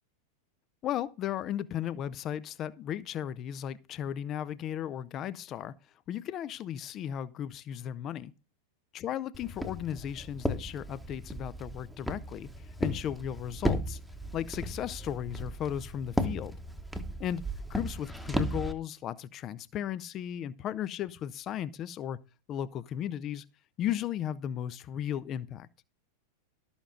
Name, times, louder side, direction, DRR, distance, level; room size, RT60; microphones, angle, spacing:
voice 1, 0.8-5.7 6.1-8.3 8.9-14.0 14.3-16.6 17.2-17.4 17.7-22.2 22.5-23.4 23.8-25.7, left 10 dB, 30° left, 0.6 m, -35 dB
Walk footsteps, 9.3-18.7, equal, ahead, 1.1 m, -35 dB
12.5 x 7.1 x 3.8 m
figure-of-eight pair, 90°, 0 cm